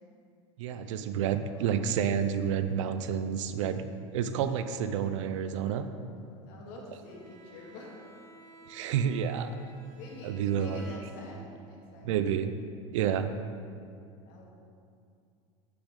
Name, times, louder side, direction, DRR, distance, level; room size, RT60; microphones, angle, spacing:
voice 1, 0.6-3.8 4.1-5.9 8.7-9.5 10.2-10.9 12.0-12.5 12.9-13.3, right 8 dB, 75° right, 10 dB, 0.6 m, -29 dB
voice 2, 1.4-1.9 5.8-7.9 9.9-12.2 13.1-13.2 14.3-14.5, left 2 dB, 65° left, -2 dB, 2.1 m, -48 dB
Bowed string instrument, 7.0-11.6, right 2 dB, 60° right, 1.3 m, -53 dB
9.7 x 6.9 x 3.8 m, 2.5 s
hypercardioid pair, 95°, 16 cm